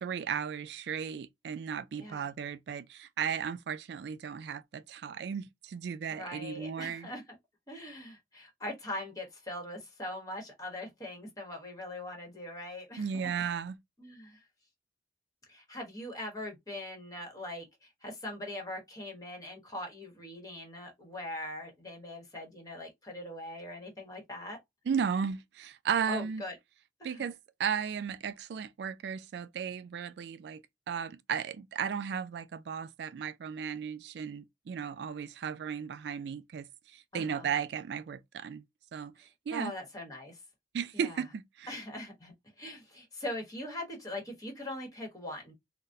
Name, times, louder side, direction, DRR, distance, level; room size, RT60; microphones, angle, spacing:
voice 1, 0.0-7.1 13.0-13.8 24.9-26.4 27.0-27.3 27.6-30.6 30.9-38.6 38.9-39.1 39.5-39.7 40.7-41.7, right 7 dB, 70° right, 0.3 m, -35 dB
voice 2, 2.0-2.3 6.1-7.4 7.7-13.3 14.0-14.4 15.5-24.6 26.1-26.6 27.0-27.3 37.1-37.5 39.5-40.4 40.9-41.2 41.7-45.5, left 1 dB, 20° left, 1.2 m, -41 dB
3.9 x 2.1 x 2.6 m
head